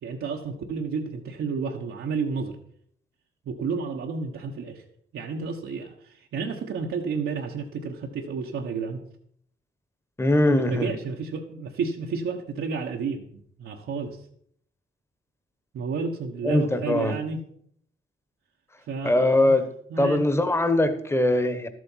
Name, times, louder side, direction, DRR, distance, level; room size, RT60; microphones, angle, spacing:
voice 1, 0.0-2.6 3.5-4.8 5.1-9.0 10.4-14.2 15.7-17.4 18.9-19.6 19.9-20.2, right 5 dB, 85° right, 1.3 m, -31 dB
voice 2, 10.2-10.9 16.4-17.1 19.0-19.7 20.0-21.7, left 1 dB, 10° left, 1.1 m, -21 dB
12.5 x 7.7 x 5.6 m
cardioid pair, 110°, 21 cm